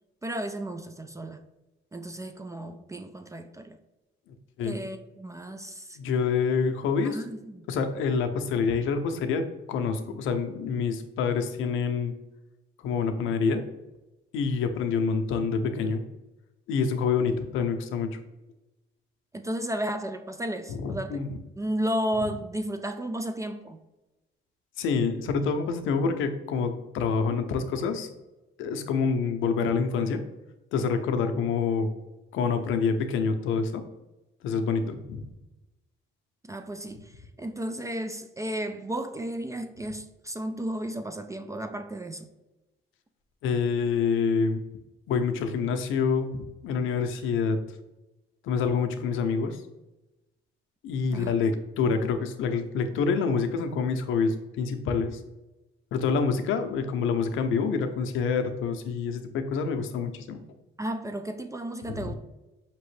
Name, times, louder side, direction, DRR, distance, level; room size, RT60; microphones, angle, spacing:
voice 1, 0.2-1.4 1.9-3.8 4.6-6.0 7.0-7.7 19.3-21.2 21.6-23.8 36.4-42.3 51.1-51.3 60.8-62.1, right 1 dB, 15° right, 0.3 m, -33 dB
voice 2, 6.0-7.2 7.7-12.1 12.8-13.6 14.3-16.0 16.7-18.2 20.7-21.3 24.8-28.1 28.6-30.2 30.7-31.9 32.3-33.8 34.4-35.2 43.4-44.6 45.1-47.6 48.4-49.6 50.8-55.2 55.9-60.4 61.9-62.1, left 5 dB, 85° left, 0.6 m, -27 dB
5.3 x 2.9 x 3.1 m
cardioid pair, 90°, 20 cm